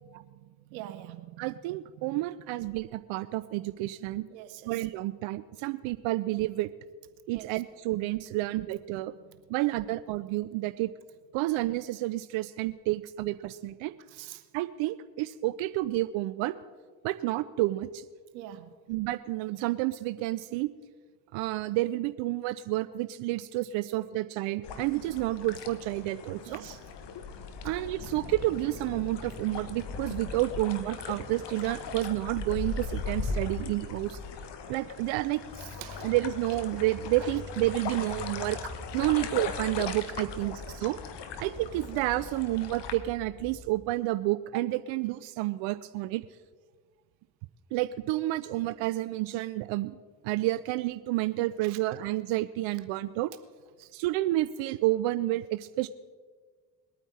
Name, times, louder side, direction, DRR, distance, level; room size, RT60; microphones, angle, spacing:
voice 1, 0.0-1.4 2.0-2.2 4.3-4.7 7.3-7.6 14.1-14.4 18.3-18.7 26.4-26.8 27.6-27.8 35.6-36.1 39.1-39.2 40.4-40.9 51.6-51.8 53.8-53.9, right 13 dB, 85° right, 12 dB, 0.9 m, -45 dB
voice 2, 1.4-4.2 4.7-6.7 7.3-9.1 9.5-10.9 11.3-13.9 14.5-16.5 17.0-18.0 18.9-20.7 21.3-26.6 27.6-34.2 34.7-35.4 36.0-38.6 38.9-40.6 40.8-41.0 41.4-46.2 47.7-49.9 50.2-53.3 53.9-55.9, right 16 dB, 65° right, 13 dB, 0.6 m, -30 dB
sound 1, 24.6-42.9, left 5 dB, 55° left, 1.3 m, -39 dB
sound 2, 28.0-33.0 35.2-43.6, left 3 dB, 40° left, 2.0 m, -46 dB
21.0 x 9.0 x 4.2 m, 1.5 s
hypercardioid pair, 50°, 49 cm